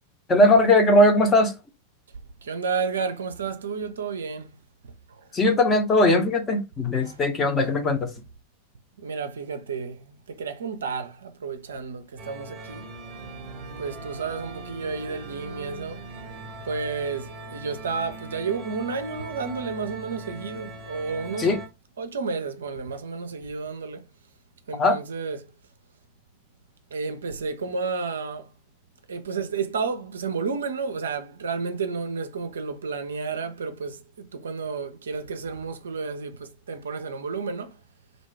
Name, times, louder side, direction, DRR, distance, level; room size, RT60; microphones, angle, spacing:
voice 1, 0.3-1.5 5.3-8.1 21.4-21.6 24.8-25.0, left 1 dB, 20° left, 0.7 m, -19 dB
voice 2, 2.4-4.6 5.1-5.2 7.0-7.2 9.0-12.8 13.8-16.1 16.6-21.5 22.0-24.0 24.7-25.4 26.9-28.5 29.1-37.8, right 5 dB, 65° right, 0.4 m, -31 dB
sound 1, 12.2-21.7, right 2 dB, 35° right, 0.9 m, -40 dB
2.5 x 2.2 x 3.2 m
figure-of-eight pair, 90°, 0 cm